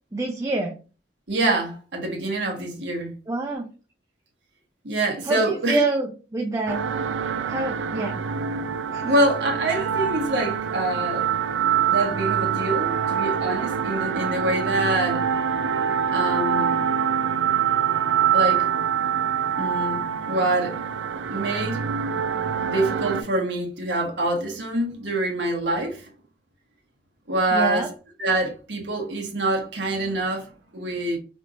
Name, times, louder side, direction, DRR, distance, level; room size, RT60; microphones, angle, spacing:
voice 1, 0.1-0.7 3.3-3.7 5.2-6.8 7.5-8.2 8.9-9.1 27.5-27.9, right 2 dB, 15° right, 0.4 m, -26 dB
voice 2, 1.3-3.1 4.8-5.8 9.0-11.3 11.9-15.3 16.1-16.8 18.3-18.7 19.6-20.8 21.3-21.8 22.6-26.1 27.3-27.9 28.2-31.2, right 2 dB, 70° right, 1.3 m, -25 dB
sound 1, 6.7-23.2, right 8 dB, 85° right, 0.4 m, -25 dB
4.5 x 3.4 x 2.5 m
head